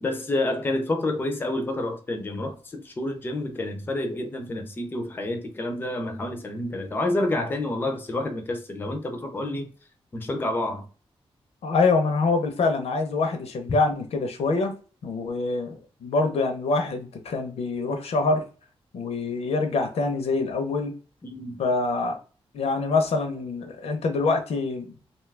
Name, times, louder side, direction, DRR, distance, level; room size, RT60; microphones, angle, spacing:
voice 1, 0.0-9.7 10.1-10.8 21.2-21.6, left 1 dB, 20° left, 0.4 m, -29 dB
voice 2, 11.6-14.7 15.0-18.5 18.9-21.0 21.6-22.2 22.5-24.9, left 3 dB, 80° left, 0.6 m, -25 dB
2.7 x 2.3 x 3.2 m
wide cardioid pair, 170°, 10 cm